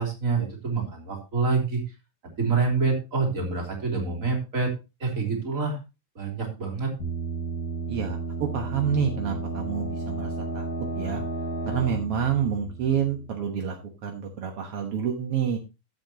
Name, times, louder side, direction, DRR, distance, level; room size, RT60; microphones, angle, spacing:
voice 1, 0.0-1.8 2.4-4.7 5.0-5.8 6.1-6.9, right 4 dB, 20° right, 1 dB, 3.1 m, -26 dB
sound 1, 7.0-13.6, right 3 dB, 45° left, 5.3 m, -33 dB
voice 2, 7.9-10.6 11.0-11.2 11.6-13.7 14.0-15.6, right 7 dB, 65° right, 2 dB, 1.5 m, -28 dB
14.5 x 8.2 x 2.9 m, 0.27 s
omnidirectional pair, 4.4 m